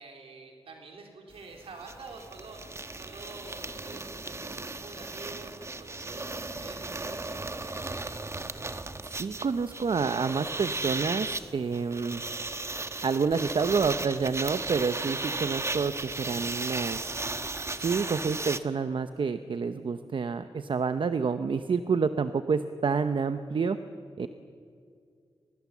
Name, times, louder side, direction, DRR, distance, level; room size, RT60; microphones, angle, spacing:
voice 1, 0.0-7.8, right 3 dB, 80° right, 2 dB, 4.0 m, -47 dB
sound 1, 1.3-1.4 1.6-18.6, right 2 dB, 30° right, 1.1 m, -36 dB
voice 2, 9.1-12.2 13.0-17.1 17.7-23.8 24.2-24.3, right 5 dB, 60° right, 10 dB, 0.8 m, -28 dB
24.0 x 20.0 x 7.4 m, 2.3 s
cardioid pair, 60°, 10 cm